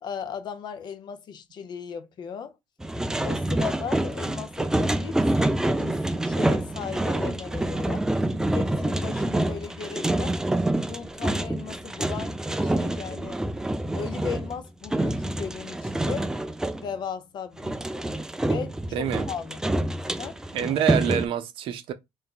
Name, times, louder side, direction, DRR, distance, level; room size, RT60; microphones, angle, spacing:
voice 1, 0.0-2.6 3.2-8.1 8.5-10.4 10.9-13.4 13.9-16.3 16.8-17.8 18.4-19.6 20.2-20.4, left 7 dB, 50° left, 0.7 m, -37 dB
sound 1, 2.8-16.9 17.6-21.3, right 1 dB, 5° right, 0.3 m, -27 dB
voice 2, 18.9-19.3 20.5-21.9, right 9 dB, 65° right, 0.6 m, -26 dB
2.6 x 2.2 x 3.7 m
supercardioid pair, 90°, 10 cm